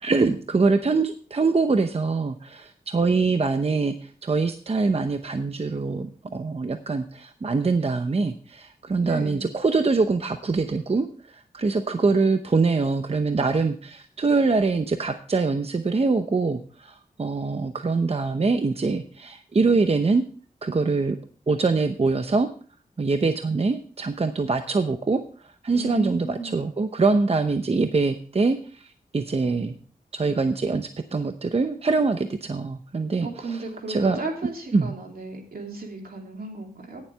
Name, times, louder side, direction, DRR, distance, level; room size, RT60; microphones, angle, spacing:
voice 1, 0.0-11.1 11.3-20.2 20.6-21.2 21.5-22.5 23.0-25.2 25.6-28.9 29.1-29.7 30.1-33.6 33.9-34.2 34.7-35.0, right 4 dB, 40° right, 8 dB, 0.8 m, -24 dB
voice 2, 9.0-9.5 25.7-26.6 33.2-37.0, right 3 dB, 75° right, 1 dB, 2.8 m, -34 dB
17.0 x 7.5 x 3.4 m, 0.42 s
cardioid pair, 65°, 15 cm